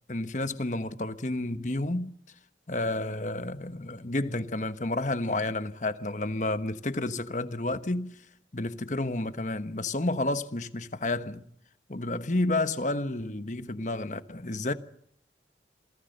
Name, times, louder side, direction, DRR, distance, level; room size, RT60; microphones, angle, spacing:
voice 1, 0.1-2.1 2.7-8.1 8.5-11.5 11.9-14.7, left 2 dB, 45° left, 1.3 m, -30 dB
28.5 x 19.5 x 6.7 m
head